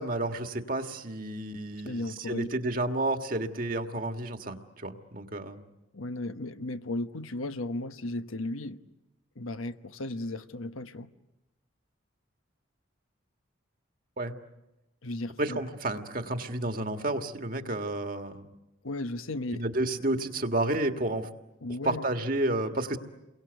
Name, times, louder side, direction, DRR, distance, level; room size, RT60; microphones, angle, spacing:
voice 1, 0.0-5.6 14.2-14.4 15.4-18.5 19.5-21.3 21.8-23.0, right 2 dB, 45° right, 1.7 m, -31 dB
voice 2, 1.8-2.5 5.9-8.8 9.4-11.1 15.0-15.6 18.8-19.6 21.6-22.1, left 2 dB, 85° left, 1.1 m, -35 dB
29.5 x 23.0 x 8.1 m
head